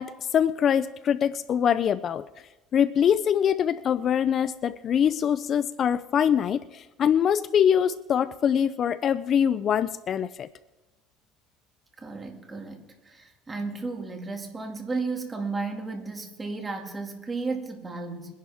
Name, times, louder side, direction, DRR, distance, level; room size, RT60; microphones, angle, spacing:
voice 1, 0.0-2.3 2.7-10.5, left 8 dB, 40° left, 15 dB, 0.4 m, -24 dB
voice 2, 12.0-18.3, right 3 dB, 20° right, 3 dB, 2.1 m, -33 dB
22.0 x 11.0 x 3.5 m, 1.1 s
cardioid pair, 125°, 0 cm